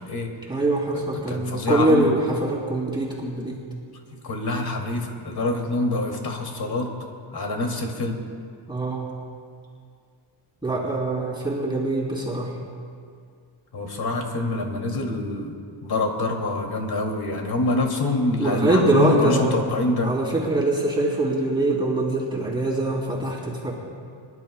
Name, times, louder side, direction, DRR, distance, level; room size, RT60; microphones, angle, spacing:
voice 1, 0.5-3.6 8.7-9.1 10.6-12.6 18.4-19.6 20.0-23.7, right 2 dB, 10° right, -5 dB, 2.9 m, -23 dB
voice 2, 1.3-2.1 4.1-6.9 7.3-8.2 13.7-15.5 15.8-20.1, left 2 dB, 45° left, 2 dB, 2.5 m, -25 dB
26.0 x 11.5 x 2.2 m, 2.3 s
cardioid pair, 85°, 49 cm